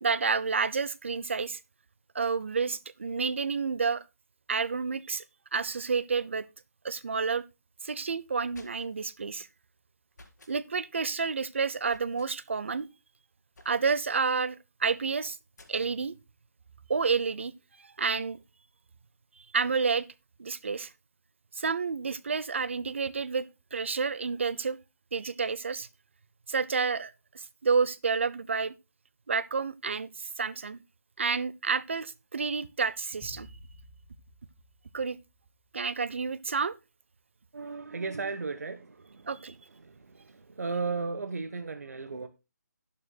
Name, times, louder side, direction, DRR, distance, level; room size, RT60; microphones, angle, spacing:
voice 1, 0.0-1.6 2.1-4.0 4.5-5.2 5.5-6.5 6.8-7.4 7.8-9.5 10.5-12.9 13.6-15.4 15.7-16.1 16.9-17.5 17.8-18.4 19.5-20.1 20.4-20.9 21.5-24.8 25.1-25.9 26.5-28.7 29.3-30.8 31.2-33.5 34.9-35.2 35.7-36.8 39.3-39.6, right 5 dB, 40° right, 0.6 m, -30 dB
sound 1, 8.2-9.1 10.1-10.6 11.9-12.3 13.5-14.1 15.5-16.0, left 2 dB, 65° left, 4.0 m, -56 dB
sound 2, 33.2-35.7, left 1 dB, 20° left, 1.6 m, -51 dB
voice 2, 37.5-39.3 39.8-42.3, right 4 dB, 55° right, 1.1 m, -35 dB
12.0 x 11.5 x 2.2 m
hypercardioid pair, 175°, 10 cm